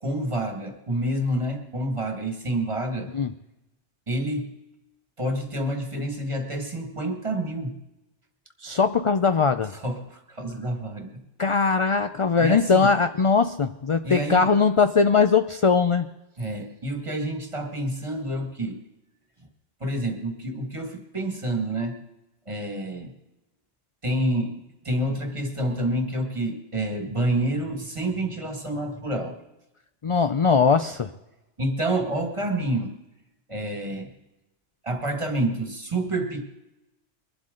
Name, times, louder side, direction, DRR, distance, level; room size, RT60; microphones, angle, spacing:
voice 1, 0.0-3.1 4.1-4.5 5.2-7.8 9.7-11.2 12.4-12.9 14.0-14.5 16.4-18.8 19.8-22.0 22.5-23.1 24.0-29.4 31.6-33.0 33.5-34.1 34.8-36.5, right 1 dB, 25° right, 4 dB, 1.8 m, -28 dB
voice 2, 8.6-9.7 11.4-16.1 30.0-31.1, left 5 dB, 50° left, 9 dB, 0.4 m, -20 dB
22.5 x 11.5 x 3.8 m, 0.98 s
omnidirectional pair, 1.2 m